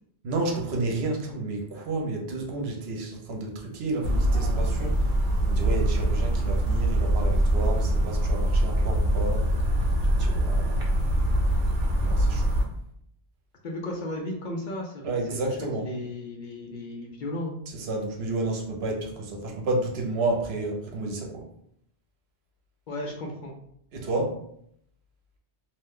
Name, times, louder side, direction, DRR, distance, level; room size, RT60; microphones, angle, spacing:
voice 1, 0.2-4.9 5.5-9.5 10.1-10.8 12.0-12.4 15.0-15.8 17.7-21.4 23.9-24.3, right 2 dB, 80° right, 1 dB, 0.9 m, -31 dB
sound 1, 4.0-12.6, right 1 dB, 55° right, 0.7 m, -23 dB
voice 2, 13.6-17.6 22.9-23.5, left 1 dB, 55° left, 0 dB, 0.6 m, -35 dB
2.6 x 2.1 x 3.5 m, 0.71 s
omnidirectional pair, 1.1 m